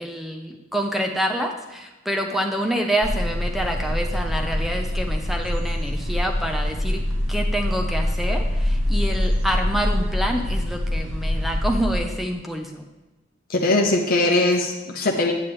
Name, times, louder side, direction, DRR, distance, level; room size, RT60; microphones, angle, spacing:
voice 1, 0.0-7.0 7.3-12.8, equal, ahead, 2 dB, 0.6 m, -27 dB
sound 1, 3.0-12.0, left 1 dB, 70° right, 1.5 m, -24 dB
voice 2, 13.5-15.3, left 2 dB, 50° left, 1 dB, 0.9 m, -20 dB
8.7 x 8.5 x 3.3 m, 1.1 s
head